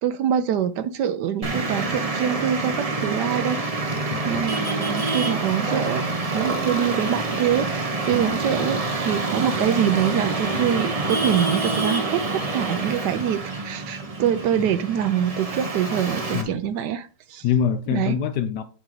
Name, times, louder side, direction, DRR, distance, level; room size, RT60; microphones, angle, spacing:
voice 1, 0.0-4.0 4.3-6.0 6.3-17.4 17.9-18.1, right 9 dB, 75° right, 1.0 m, -25 dB
Traffic noise roadway noise, 1.4-16.4, right 3 dB, 30° right, 0.6 m, -27 dB
voice 2, 4.1-4.5 8.1-8.4 16.3-16.7 17.4-18.6, left 8 dB, 70° left, 1.1 m, -25 dB
8.7 x 4.5 x 3.9 m
omnidirectional pair, 2.2 m